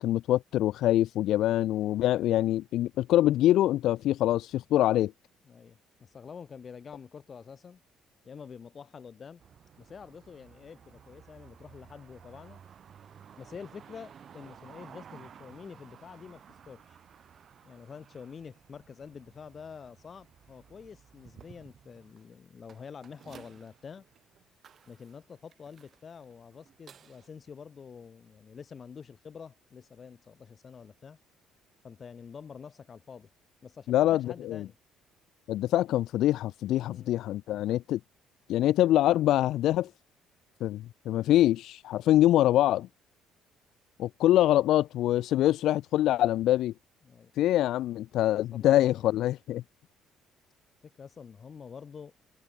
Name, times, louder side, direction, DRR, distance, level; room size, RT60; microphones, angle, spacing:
voice 1, 0.0-5.1 33.9-34.6 35.5-38.0 38.5-39.9 40.6-42.9 44.0-46.7 47.4-49.6, left 13 dB, 65° left, 0.4 m, -24 dB
voice 2, 5.4-7.8 8.2-9.4 9.8-12.6 13.4-17.0 17.6-24.1 24.5-24.6 24.9-31.2 31.8-33.3 33.6-34.8 36.9-37.1 47.0-47.3 48.5-49.2 50.8-52.1, left 6 dB, 30° left, 2.2 m, -47 dB
sound 1, 9.4-27.3, right 8 dB, 40° right, 7.7 m, -55 dB
cardioid pair, 150°, 0 cm